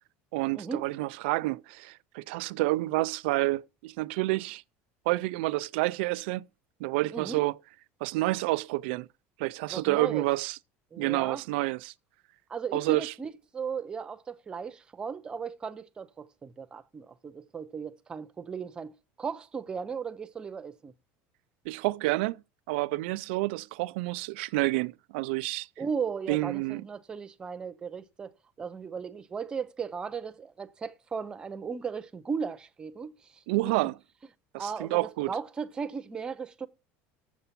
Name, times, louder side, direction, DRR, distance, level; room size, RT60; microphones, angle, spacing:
voice 1, 0.3-4.6 5.1-6.5 6.8-7.5 8.0-9.1 9.4-10.6 11.0-11.9 12.7-13.1 21.7-22.4 22.7-25.7 26.3-26.8 33.5-33.9 34.5-35.3, right 20 dB, 90° right, 0.4 m, -29 dB
voice 2, 7.1-7.4 9.7-10.3 10.9-11.4 12.5-20.9 25.8-28.3 28.6-33.7 34.6-36.7, right 6 dB, 15° right, 0.5 m, -36 dB
7.4 x 6.8 x 5.8 m
cardioid pair, 180°, 6 cm